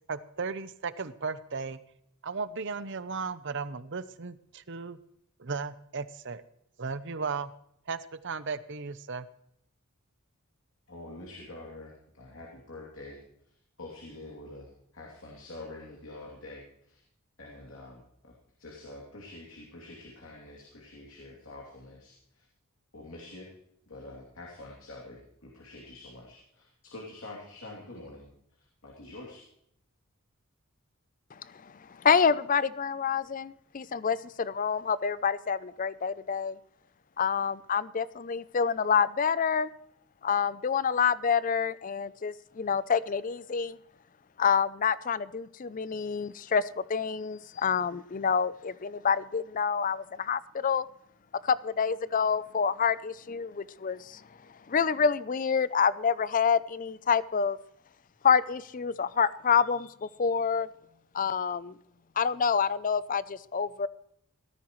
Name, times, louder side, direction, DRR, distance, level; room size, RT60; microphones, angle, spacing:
voice 1, 0.1-1.8 2.2-5.0 5.4-6.4 6.8-7.5 7.9-9.3, right 4 dB, 55° right, 14 dB, 0.8 m, -35 dB
voice 2, 10.9-13.2 13.8-17.0 17.4-18.3 18.6-22.5 22.9-23.5 23.9-29.4, left 2 dB, 70° left, -2 dB, 2.8 m, -46 dB
voice 3, 32.0-36.6 37.2-39.7 40.2-43.8 44.4-46.6 46.9-50.9 51.5-54.2 54.7-57.6 58.2-59.9 60.2-60.7 61.1-61.7 62.2-63.9, left 6 dB, 40° left, 17 dB, 0.5 m, -27 dB
17.5 x 13.5 x 3.1 m, 0.74 s
head